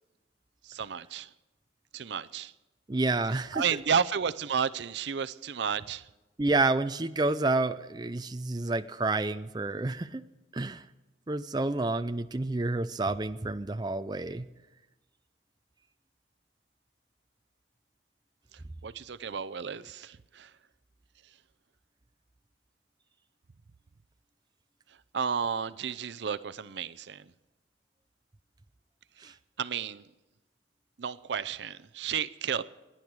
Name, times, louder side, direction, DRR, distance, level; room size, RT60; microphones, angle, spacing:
voice 1, 0.6-1.3 1.9-2.5 3.5-6.1 18.8-20.5 25.1-27.2 29.2-29.3 29.6-30.1 31.0-32.6, right 7 dB, 70° right, 0.5 m, -32 dB
voice 2, 2.9-3.6 6.4-10.2 10.5-10.8 11.3-14.5 29.2-29.3, right 2 dB, 20° right, 0.5 m, -29 dB
28.5 x 10.5 x 4.7 m
head